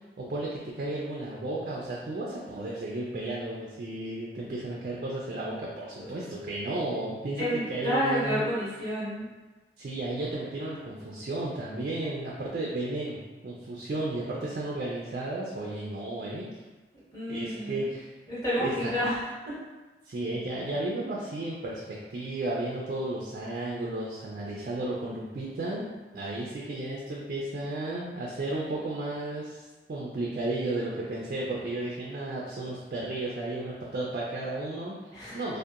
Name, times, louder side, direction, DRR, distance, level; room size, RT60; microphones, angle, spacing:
voice 1, 0.2-8.5 9.8-13.2 13.4-16.5 17.3-18.1 18.6-18.9 20.1-21.8 22.1-34.9 35.3-35.6, right 2 dB, 50° right, -4 dB, 0.3 m, -33 dB
voice 2, 7.4-9.3 17.1-17.9 18.3-19.5 35.1-35.4, equal, 20° left, -13 dB, 1.2 m, -30 dB
2.7 x 2.1 x 2.3 m, 1.2 s
head